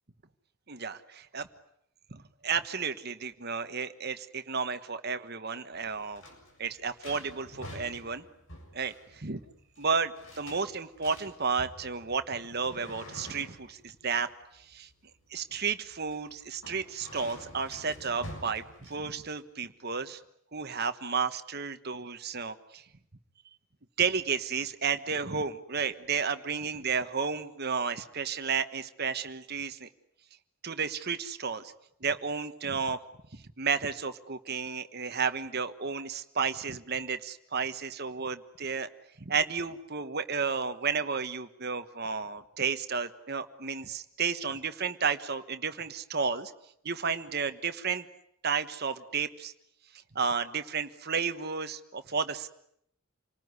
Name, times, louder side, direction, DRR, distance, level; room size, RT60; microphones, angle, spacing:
voice 1, 0.7-1.5 2.1-6.2 6.6-8.2 8.7-9.4 9.8-14.9 15.3-20.2 20.5-22.8 24.0-29.9 30.6-31.7 32.0-33.0 33.3-38.9 39.2-46.5 46.8-48.1 48.4-49.5 50.1-52.5, right 5 dB, 45° right, 9 dB, 1.3 m, -32 dB
sound 1, 5.7-19.4, equal, 60° left, 7.2 m, -49 dB
28.5 x 19.5 x 9.7 m, 0.76 s
head